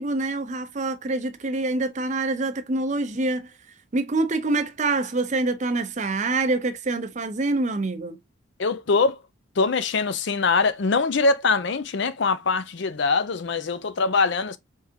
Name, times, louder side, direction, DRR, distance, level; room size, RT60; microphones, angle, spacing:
voice 1, 0.0-3.5 3.9-8.2, right 2 dB, 35° right, 0.5 m, -26 dB
voice 2, 8.6-9.2 9.6-14.6, left 4 dB, 55° left, 0.5 m, -23 dB
4.6 x 3.6 x 2.7 m
head